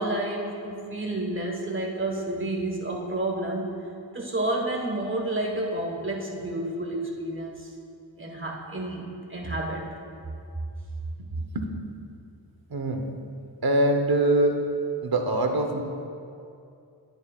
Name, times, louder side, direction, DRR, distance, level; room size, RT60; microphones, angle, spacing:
voice 1, 0.0-3.7 4.1-7.7 8.2-9.0 9.3-9.9, right 1 dB, 25° right, -1 dB, 1.4 m, -30 dB
voice 2, 11.3-11.7 12.7-13.1 13.6-14.6 15.0-15.8, right 1 dB, 50° right, 4 dB, 0.9 m, -23 dB
11.0 x 10.5 x 2.4 m, 2.5 s
wide cardioid pair, 100°, 46 cm